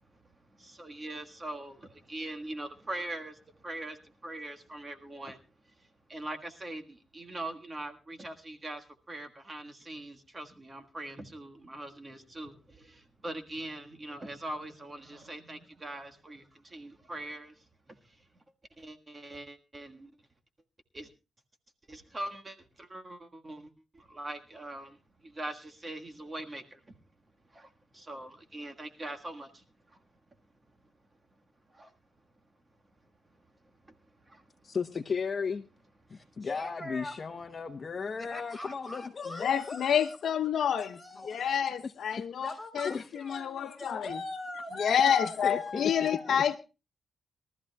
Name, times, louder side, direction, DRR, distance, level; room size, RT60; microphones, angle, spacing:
voice 1, 0.6-5.4 6.1-17.5 18.8-20.1 20.9-21.1 21.9-25.0 25.2-26.8 27.5-29.6 31.7-31.9 34.3-34.4, right 1 dB, 25° right, 1.6 m, -42 dB
voice 2, 34.6-35.7 36.1-39.8 41.8-41.9 42.8-43.0 45.4-46.4, left 5 dB, 45° left, 0.8 m, -35 dB
voice 3, 36.1-37.2 38.2-40.2 40.8-41.7 42.1-46.4, left 2 dB, 5° left, 5.1 m, -42 dB
voice 4, 39.4-42.9 43.3-44.2 44.8-46.6, left 8 dB, 75° left, 1.0 m, -28 dB
22.5 x 14.0 x 2.3 m
cardioid pair, 100°, 0 cm